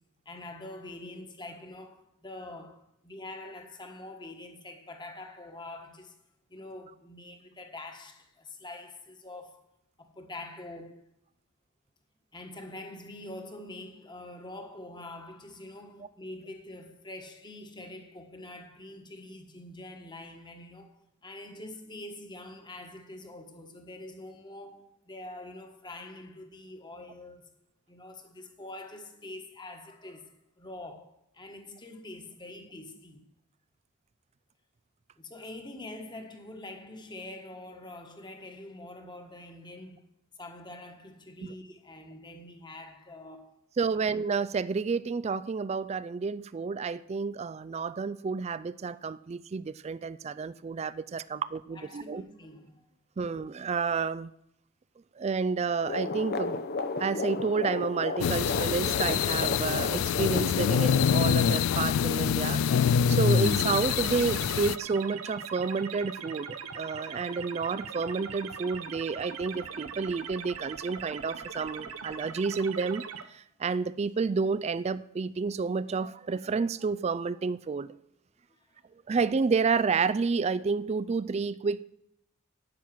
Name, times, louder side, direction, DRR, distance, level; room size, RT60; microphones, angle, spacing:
voice 1, 0.2-6.2 6.5-9.6 10.0-11.0 12.3-27.5 27.9-33.2 35.2-40.1 40.4-43.5 43.8-44.0 51.7-52.9 78.5-78.6, left 2 dB, 20° left, 1.4 m, -45 dB
voice 2, 43.8-52.3 53.2-54.3 55.2-56.6 57.0-73.0 73.3-77.9 79.1-81.8, right 5 dB, 30° right, 0.3 m, -30 dB
sound 1, 55.8-60.9, left 3 dB, 45° left, 0.8 m, -33 dB
sound 2, 58.2-64.8, left 7 dB, 75° left, 0.3 m, -25 dB
sound 3, 63.4-73.2, right 6 dB, 80° right, 0.9 m, -41 dB
10.5 x 8.9 x 6.1 m
head